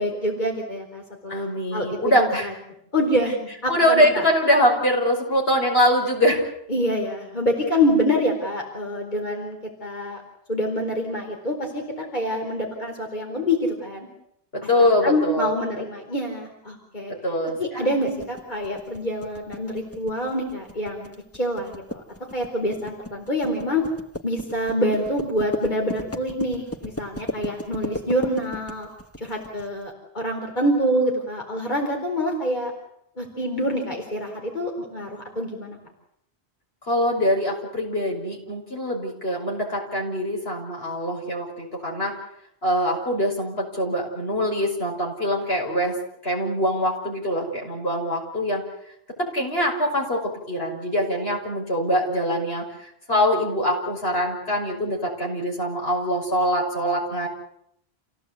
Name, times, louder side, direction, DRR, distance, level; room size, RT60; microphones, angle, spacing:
voice 1, 0.0-2.5 2.9-4.2 6.7-10.2 10.5-14.1 14.8-17.1 17.6-22.0 22.3-23.8 24.2-28.9 29.2-32.7 33.2-35.8, equal, 45° left, 1 dB, 4.5 m, -26 dB
voice 2, 1.3-2.5 3.7-6.4 14.5-15.8 17.2-17.9 36.8-42.2 42.6-45.9 46.2-48.6 49.2-57.3, equal, 75° left, -1 dB, 6.1 m, -23 dB
sound 1, 18.1-29.7, equal, 15° left, 1.4 m, -35 dB
28.5 x 17.0 x 8.3 m, 0.74 s
omnidirectional pair, 1.1 m